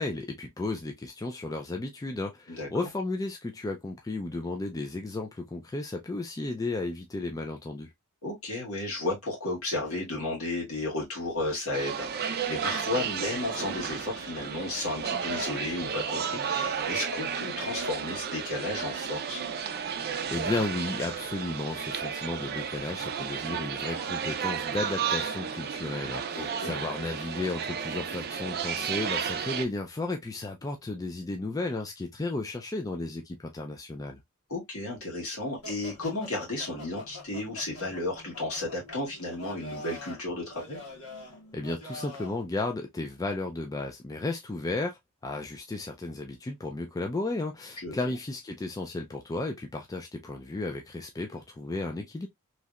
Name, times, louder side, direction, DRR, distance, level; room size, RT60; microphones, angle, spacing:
voice 1, 0.0-7.9 20.3-34.2 41.5-52.3, left 2 dB, 15° left, 0.3 m, -34 dB
voice 2, 8.2-19.4 26.3-26.7 34.5-40.8 47.8-48.2, left 2 dB, 65° left, 1.8 m, -33 dB
sound 1, 11.7-29.7, right 7 dB, 45° right, 0.4 m, -33 dB
sound 2, 35.6-42.4, left 1 dB, 90° left, 1.6 m, -45 dB
3.2 x 2.8 x 2.3 m
head